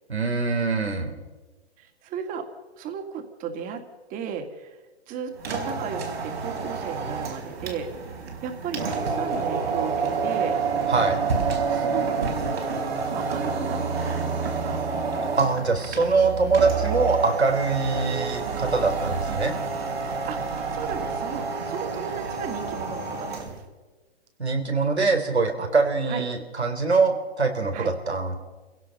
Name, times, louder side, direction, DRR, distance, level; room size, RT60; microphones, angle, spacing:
voice 1, 0.1-1.1 10.9-11.2 15.4-19.5 24.4-28.4, right 4 dB, 90° right, 5 dB, 3.9 m, -23 dB
voice 2, 1.8-2.5 2.8-3.8 4.1-4.8 5.1-7.9 8.4-10.6 11.7-12.6 13.1-14.9 20.2-23.6 26.1-26.2 27.7-27.9, right 7 dB, 25° right, 6 dB, 2.5 m, -35 dB
sound 1, 5.3-23.6, right 5 dB, 70° right, 4.7 m, -28 dB
28.0 x 16.5 x 5.6 m, 1.3 s
hypercardioid pair, 125°, 32 cm